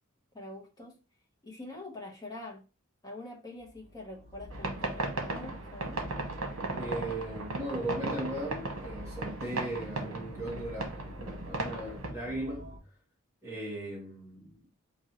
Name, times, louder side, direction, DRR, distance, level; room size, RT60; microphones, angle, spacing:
voice 1, 0.3-1.0 1.4-2.6 3.0-6.0, left 2 dB, 20° left, 1.1 m, -44 dB
sound 1, 3.6-12.8, left 1 dB, 60° right, 2.4 m, -47 dB
sound 2, 4.5-12.1, right 2 dB, 80° right, 1.1 m, -36 dB
voice 2, 6.8-12.7 13.4-14.6, right 1 dB, 15° right, 1.6 m, -38 dB
6.0 x 2.6 x 3.0 m
head